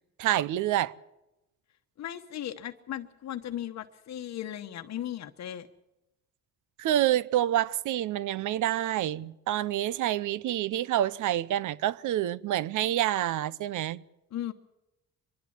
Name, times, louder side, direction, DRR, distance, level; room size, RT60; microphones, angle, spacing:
voice 1, 0.2-0.9 6.8-14.0, right 12 dB, 80° right, 0.8 m, -27 dB
voice 2, 2.0-5.7 14.3-14.5, left 11 dB, 65° left, 1.1 m, -37 dB
25.0 x 11.5 x 9.6 m
cardioid pair, 90°, 30 cm